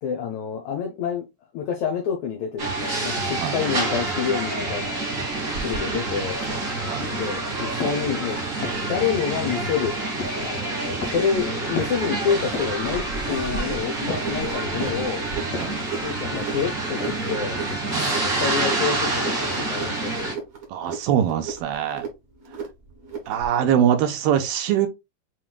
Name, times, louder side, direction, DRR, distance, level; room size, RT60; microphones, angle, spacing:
voice 1, 0.0-1.3 1.5-5.0 5.5-6.4 7.1-8.4 8.9-9.9 10.4-15.2 16.0-17.6 17.9-20.1, left 7 dB, 75° left, 1.7 m, -28 dB
sound 1, 2.6-20.3, right 2 dB, 60° right, 0.8 m, -27 dB
sound 2, 5.5-23.6, right 4 dB, 45° right, 1.2 m, -38 dB
sound 3, 6.5-6.6 7.0-7.4 7.8-8.1 8.6-9.0 9.4-9.8 10.2-10.5 11.0-11.4 11.8-12.1 12.5-12.9 13.3-13.7 14.1-14.4 14.8-15.2 15.5-15.8 16.3-16.7 17.0-17.4 17.7-17.8, left 4 dB, 55° left, 1.9 m, -34 dB
voice 2, 20.7-22.1 23.3-24.9, right 9 dB, 80° right, 2.5 m, -23 dB
7.3 x 3.1 x 2.3 m
omnidirectional pair, 4.3 m